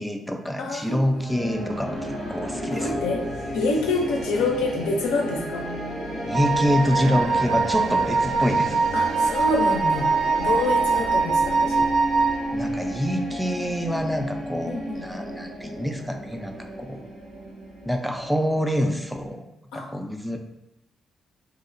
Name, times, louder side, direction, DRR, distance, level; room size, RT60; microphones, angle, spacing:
voice 1, 0.0-3.0 6.3-8.8 12.5-17.0 17.9-19.4 19.7-20.4, equal, ahead, 4 dB, 0.3 m, -26 dB
voice 2, 0.6-1.1 2.7-3.2 3.5-5.7 8.9-10.1 10.4-11.8 14.7-15.0 19.7-19.9, left 3 dB, 85° left, 1 dB, 0.4 m, -27 dB
sound 1, 1.1-19.3, equal, 90° right, 0.8 m, -33 dB
Wind instrument woodwind instrument, 6.3-12.4, right 4 dB, 70° right, 0.4 m, -23 dB
2.7 x 2.0 x 2.5 m, 0.89 s
supercardioid pair, 65°, 0 cm